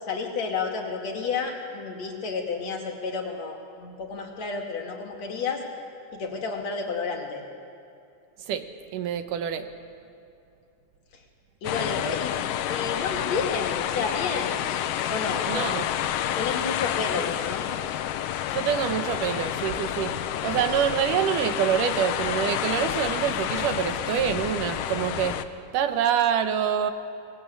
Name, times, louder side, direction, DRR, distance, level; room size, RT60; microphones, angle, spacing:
voice 1, 0.1-5.6 6.1-7.4 11.1-11.2 11.6-12.4 12.7-14.6 15.1-15.8 16.3-17.7, left 4 dB, 55° left, 1 dB, 3.4 m, -31 dB
voice 2, 8.9-9.7 15.5-15.9 16.3-16.4 18.5-25.4 25.7-26.9, right 9 dB, 80° right, 8 dB, 2.7 m, -26 dB
sound 1, 11.6-25.4, left 11 dB, 80° left, 2.4 m, -29 dB
24.0 x 20.0 x 8.6 m, 2.6 s
omnidirectional pair, 3.7 m